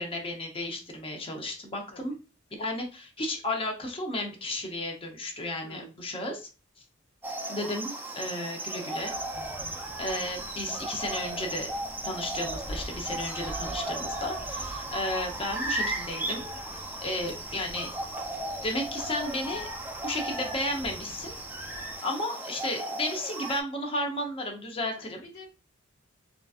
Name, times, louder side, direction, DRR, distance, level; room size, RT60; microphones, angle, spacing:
voice 1, 0.0-2.1 2.5-6.5 7.5-9.1 10.0-11.7 12.0-16.4 17.0-17.9 18.6-19.7 20.0-21.4 22.0-25.2, left 1 dB, 25° left, 2 dB, 0.7 m, -33 dB
voice 2, 5.6-5.9 13.8-14.0 24.8-25.5, left 1 dB, 80° left, 1 dB, 1.3 m, -49 dB
sound 1, 7.2-23.6, right 2 dB, 10° right, 0.4 m, -36 dB
sound 2, 9.0-22.0, equal, 45° left, 1.2 m, -46 dB
3.9 x 2.4 x 2.3 m, 0.32 s
head